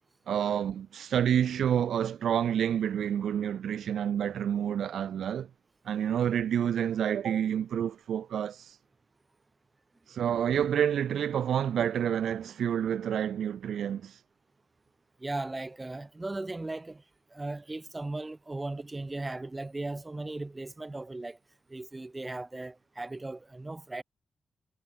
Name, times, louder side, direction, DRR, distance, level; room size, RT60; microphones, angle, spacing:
voice 1, 0.3-5.5 5.9-8.7 10.1-14.2, right 9 dB, 80° right, 0.6 m, -28 dB
voice 2, 15.2-17.0 17.3-21.4 21.7-24.0, right 2 dB, 25° right, 1.7 m, -37 dB
supercardioid pair, 45°, 0 cm